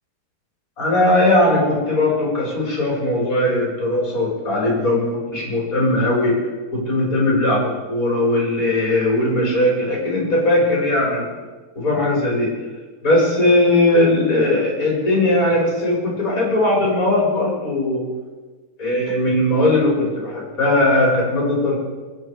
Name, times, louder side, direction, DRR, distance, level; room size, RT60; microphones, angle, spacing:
voice 1, 0.8-6.3 6.7-11.2 11.7-12.5 13.0-18.0 18.8-21.7, left 1 dB, 20° left, -4 dB, 5.0 m, -19 dB
22.5 x 10.5 x 4.8 m, 1.3 s
omnidirectional pair, 4.0 m